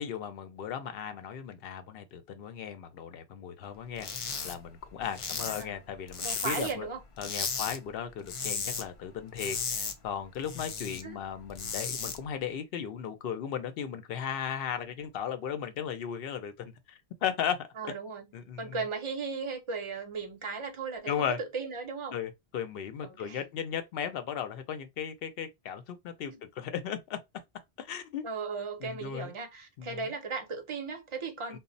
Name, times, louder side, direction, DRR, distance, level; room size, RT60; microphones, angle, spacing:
voice 1, 0.0-4.1 4.4-6.9 7.2-17.9 18.3-18.8 21.1-21.4 22.1-27.2 27.8-28.3 28.8-29.3 29.8-30.0 31.5-31.6, left 8 dB, 70° left, 0.8 m, -36 dB
sound 1, 4.0-4.6 4.8-6.8 7.2-7.8 8.1-8.9 9.2-11.0 11.4-12.2, left 5 dB, 55° left, 0.4 m, -35 dB
voice 2, 5.4-5.8 6.2-7.0 11.0-11.2 17.8-18.3 18.6-22.2 23.0-23.4 26.3-26.4 28.2-31.6, right 5 dB, 35° right, 0.6 m, -36 dB
2.1 x 2.0 x 3.7 m
omnidirectional pair, 1.1 m